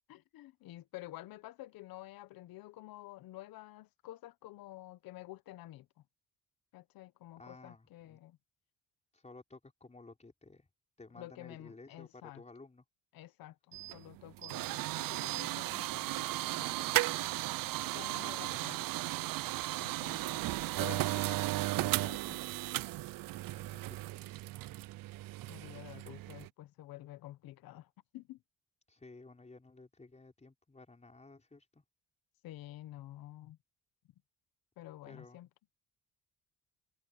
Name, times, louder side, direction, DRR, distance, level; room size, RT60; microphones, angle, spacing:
voice 1, 0.1-5.9 6.7-8.4 11.1-12.4 13.1-17.1 17.9-18.8 19.8-20.4 20.8-22.4 25.5-28.4 32.4-33.6 34.8-35.5, left 15 dB, 90° left, 1.1 m, -50 dB
voice 2, 7.4-8.2 9.1-10.7 11.0-12.8 18.3-19.2 23.5-24.6 28.9-31.8 35.1-35.4, left 3 dB, 20° left, 4.8 m, -55 dB
sound 1, 13.7-26.5, right 17 dB, 75° right, 0.6 m, -35 dB
cardioid pair, 90°, 34 cm